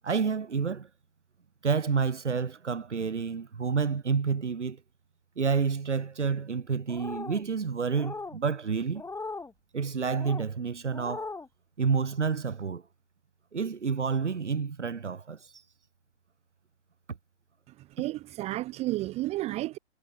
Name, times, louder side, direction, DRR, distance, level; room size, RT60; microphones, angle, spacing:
voice 1, 0.0-0.9 1.6-4.8 5.4-9.0 9.7-11.3 11.8-12.8 13.5-15.5, right 5 dB, 85° right, 1.6 m, -29 dB
sound 1, 6.9-7.4 7.9-8.4 8.9-9.5 10.1-10.5 10.9-11.5, left 3 dB, 10° left, 4.9 m, -39 dB
voice 2, 18.0-19.8, right 17 dB, 20° right, 0.5 m, -31 dB
figure-of-eight pair, 110°, 35 cm